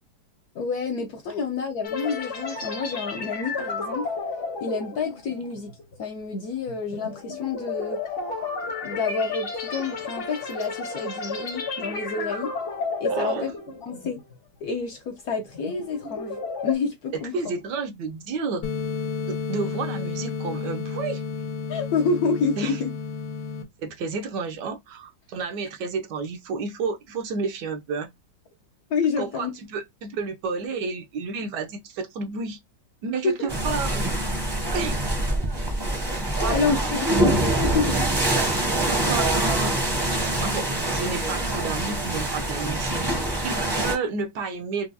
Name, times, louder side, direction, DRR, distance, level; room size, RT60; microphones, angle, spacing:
voice 1, 0.5-4.1 4.6-5.7 6.0-8.0 8.8-12.5 13.0-13.5 13.8-14.2 14.6-16.4 16.6-17.4 21.7-22.9 28.9-29.5 33.2-33.3 36.5-38.0, left 4 dB, 70° left, 0.9 m, -28 dB
sound 1, 1.8-14.4 14.7-14.9 15.4-16.7, left 4 dB, 45° left, 0.8 m, -32 dB
voice 2, 13.1-13.5 17.1-18.7 19.3-21.2 22.6-22.8 23.8-28.1 29.2-32.6 33.0-34.1 34.7-35.0 36.4-37.0 38.4-39.8 40.4-42.9 43.3-44.9, right 4 dB, 75° right, 1.2 m, -31 dB
sound 2, 18.6-23.6, left 5 dB, 90° left, 1.5 m, -31 dB
sound 3, 33.5-43.9, right 1 dB, 25° right, 0.6 m, -25 dB
4.6 x 2.2 x 2.6 m
omnidirectional pair, 2.0 m